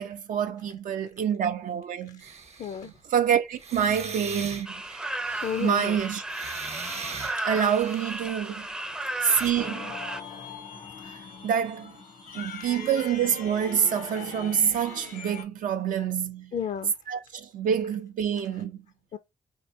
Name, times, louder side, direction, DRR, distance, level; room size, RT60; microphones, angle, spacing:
voice 1, 0.0-2.3 3.1-4.8 5.6-6.2 7.4-8.7 9.2-9.9 11.0-12.0 12.3-16.5 17.1-18.8, right 8 dB, 70° right, 0.4 m, -27 dB
sound 1, 2.2-2.9 3.6-8.6 9.2-9.5, right 5 dB, 50° right, 0.7 m, -40 dB
voice 2, 2.6-2.9 5.4-6.0 8.9-9.1 9.4-9.5 12.6-12.7 16.5-17.0 19.1-19.2, left 8 dB, 60° left, 0.4 m, -33 dB
sound 2, 4.7-10.2, right 2 dB, 5° right, 0.4 m, -34 dB
sound 3, 9.6-15.4, left 5 dB, 85° left, 1.1 m, -41 dB
4.4 x 2.6 x 2.6 m
cardioid pair, 75°, 14 cm